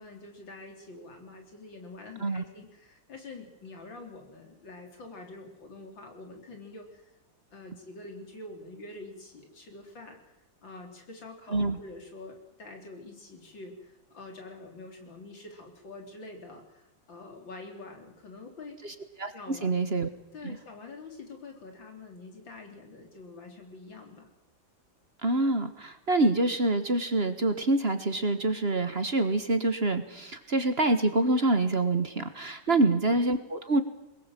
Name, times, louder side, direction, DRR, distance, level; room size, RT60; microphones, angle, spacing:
voice 1, 0.0-7.1 7.5-10.2 10.6-18.8 19.3-19.7 20.3-24.3 32.7-32.8, left 2 dB, 90° left, 3 dB, 4.4 m, -46 dB
voice 2, 19.6-20.1 20.4-20.6 25.2-33.8, right 2 dB, 35° right, 9 dB, 1.5 m, -26 dB
23.0 x 21.0 x 7.6 m, 0.88 s
omnidirectional pair, 2.0 m